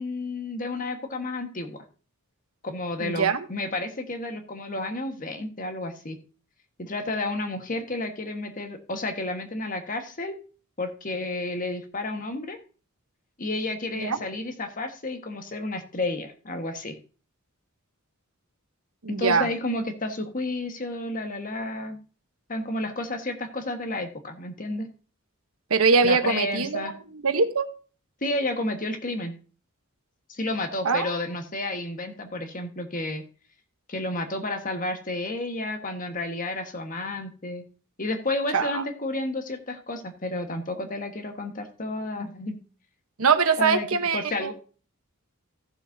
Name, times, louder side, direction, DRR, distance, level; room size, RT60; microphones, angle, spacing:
voice 1, 0.0-1.8 2.6-6.2 6.8-10.4 10.8-12.6 13.4-17.0 19.1-22.0 22.5-24.9 26.0-26.9 28.2-29.4 30.3-33.2 33.9-37.6 38.0-42.6 43.6-44.5, left 2 dB, 40° left, 6 dB, 1.4 m, -31 dB
voice 2, 3.0-3.4 14.0-14.2 19.0-19.5 25.7-26.9 27.1-27.7 30.8-31.1 38.5-38.8 43.2-44.5, right 5 dB, 75° right, 9 dB, 1.1 m, -23 dB
15.5 x 7.1 x 2.7 m, 0.37 s
head